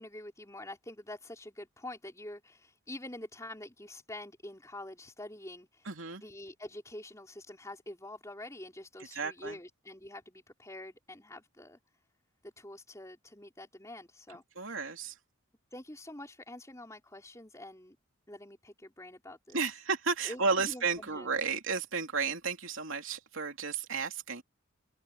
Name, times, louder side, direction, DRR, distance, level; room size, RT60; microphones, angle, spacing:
voice 1, 0.0-11.8 12.4-14.8 15.7-18.0 18.3-19.6 20.3-21.3, left 1 dB, 15° left, 4.2 m, -46 dB
voice 2, 5.8-6.2 9.1-9.6 14.5-15.2 19.5-24.4, right 4 dB, 70° right, 3.1 m, -33 dB
head